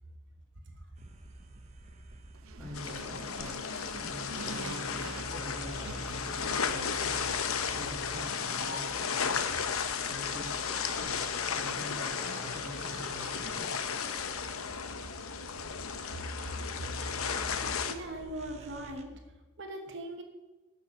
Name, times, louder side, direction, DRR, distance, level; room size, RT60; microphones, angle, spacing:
sound 1, 1.0-19.0, right 1 dB, 30° right, 0.9 m, -48 dB
sound 2, 2.3-7.5, right 4 dB, 85° right, 0.6 m, -47 dB
voice 1, 2.5-3.6 4.0-9.7 10.0-13.9, left 1 dB, 5° left, -5 dB, 3.6 m, -45 dB
sound 3, 2.7-17.9, left 6 dB, 85° left, 0.9 m, -34 dB
voice 2, 16.4-16.9 17.5-19.2 19.6-20.2, right 1 dB, 55° right, 3 dB, 1.1 m, -41 dB
11.0 x 6.9 x 7.1 m, 1.2 s
head